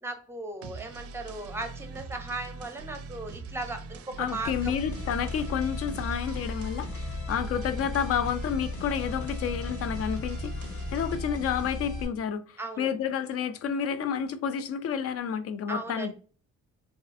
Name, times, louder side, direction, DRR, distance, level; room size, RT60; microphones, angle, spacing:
voice 1, 0.0-4.7 12.6-12.9 15.7-16.1, right 2 dB, 10° right, 0.6 m, -37 dB
sound 1, 0.6-11.3, right 4 dB, 50° right, 0.4 m, -42 dB
voice 2, 4.2-16.1, left 8 dB, 50° left, 0.4 m, -30 dB
sound 2, 4.4-12.0, left 3 dB, 75° left, 0.8 m, -36 dB
2.4 x 2.4 x 2.4 m
cardioid pair, 90°, 30 cm